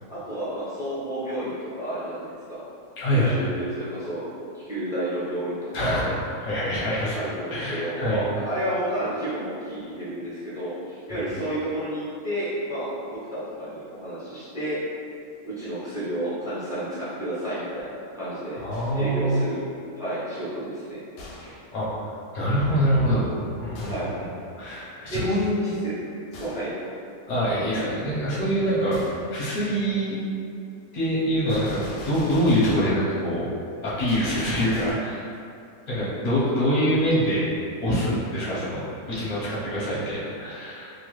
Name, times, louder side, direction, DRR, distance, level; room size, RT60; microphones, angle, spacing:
voice 1, 0.1-2.6 3.0-4.3 4.5-6.1 7.1-14.8 15.4-18.6 18.9-19.6 19.9-21.0 21.4-21.5 23.9-24.1 25.1-26.0 26.3-26.8 38.5-38.6 39.1-39.2, right 1 dB, 5° right, -12 dB, 0.3 m, -31 dB
voice 2, 3.0-3.4 5.7-6.0 6.4-7.2 7.5-8.2 18.6-19.4 21.7-24.1 24.6-25.8 27.3-29.0 29.3-30.2 30.9-33.4 33.8-35.3 35.9-37.5 37.8-38.8 39.1-40.9, equal, 40° left, -9 dB, 0.6 m, -25 dB
Gunshot gunfire, 18.7-19.2 21.2-21.7 23.7-24.2 26.3-26.8 28.9-29.3 31.5-33.0 34.1-34.9, left 1 dB, 85° left, 1.2 m, -41 dB
2.9 x 2.3 x 3.1 m, 2.4 s
omnidirectional pair, 1.8 m